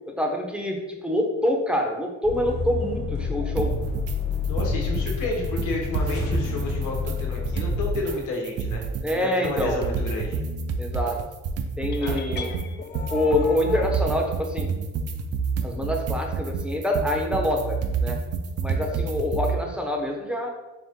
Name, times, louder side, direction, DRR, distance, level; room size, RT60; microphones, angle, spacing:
voice 1, 0.1-3.7 9.0-9.8 10.8-11.2 11.8-12.5 13.1-14.7 15.6-18.2 18.6-20.5, left 1 dB, 5° right, 1 dB, 0.7 m, -26 dB
sound 1, 2.2-8.0, left 5 dB, 50° left, 1.3 m, -29 dB
sound 2, 3.6-4.2 4.4-5.2 5.4-8.2 8.4-19.6, right 5 dB, 55° right, 0.5 m, -29 dB
voice 2, 4.5-8.8 9.1-10.4 12.0-12.2, left 2 dB, 80° left, -1 dB, 1.2 m, -31 dB
sound 3, 11.9-13.9, left 6 dB, 35° left, 0.4 m, -37 dB
4.6 x 2.5 x 3.6 m, 1.1 s
cardioid pair, 90°, 30 cm